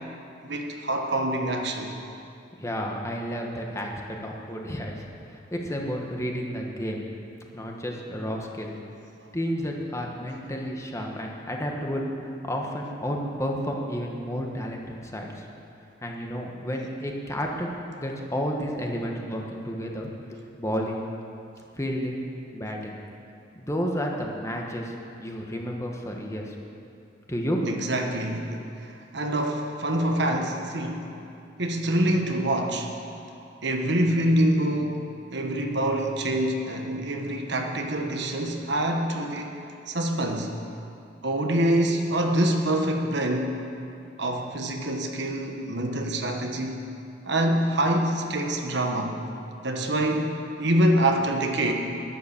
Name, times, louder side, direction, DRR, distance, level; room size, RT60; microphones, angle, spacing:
voice 1, 0.4-1.9 27.6-31.1 31.6-32.9 33.6-39.5 39.9-40.5 41.2-43.6 44.2-46.9 47.2-49.2 49.6-51.7, right 1 dB, 65° right, 3 dB, 1.3 m, -25 dB
voice 2, 2.6-4.9 5.5-7.0 7.5-8.7 9.3-12.1 12.4-15.4 16.0-21.0 21.8-22.2 22.5-23.0 23.5-24.9 25.2-26.5 27.3-27.6, equal, 15° left, 0 dB, 1.3 m, -31 dB
11.5 x 10.5 x 7.2 m, 2.6 s
head